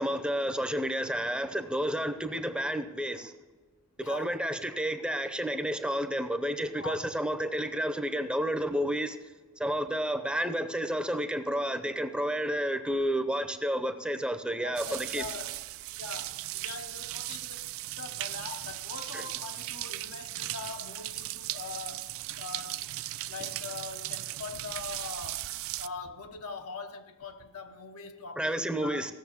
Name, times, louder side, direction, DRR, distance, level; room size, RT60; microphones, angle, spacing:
voice 1, 0.0-3.3 4.0-9.2 9.6-15.2 19.1-19.3 28.4-29.1, equal, 5° right, 0.6 m, -31 dB
voice 2, 4.0-4.4 6.8-7.1 14.6-15.6 16.0-17.7 18.0-22.9 23.3-25.5 25.8-29.0, left 4 dB, 85° left, 1.1 m, -42 dB
sound 1, 14.8-25.9, right 16 dB, 65° right, 0.3 m, -37 dB
15.5 x 6.7 x 6.9 m
head